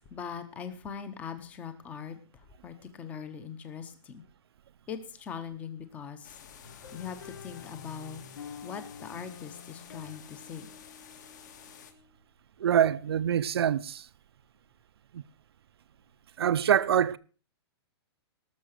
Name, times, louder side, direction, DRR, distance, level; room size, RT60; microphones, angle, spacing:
voice 1, 0.1-2.2 2.6-4.2 4.9-6.3 6.9-8.2 8.6-10.7, left 7 dB, 10° left, 0.9 m, -41 dB
sound 1, 6.2-11.9, left 8 dB, 45° left, 1.9 m, -51 dB
sound 2, 6.6-12.2, left 6 dB, 90° left, 3.7 m, -48 dB
voice 2, 12.6-14.0 15.1-15.2 16.4-17.2, right 9 dB, 65° right, 0.7 m, -25 dB
18.5 x 7.0 x 6.6 m
hypercardioid pair, 180°, 14 cm